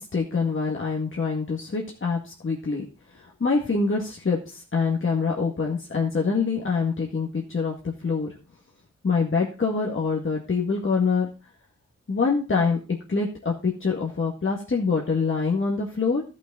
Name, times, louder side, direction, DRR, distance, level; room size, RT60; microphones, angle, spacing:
voice 1, 0.0-2.8 3.1-8.3 9.0-11.3 12.1-12.8 13.1-16.2, left 4 dB, 45° left, -2 dB, 2.0 m, -25 dB
13.5 x 6.3 x 4.0 m, 0.33 s
cardioid pair, 60°, 30 cm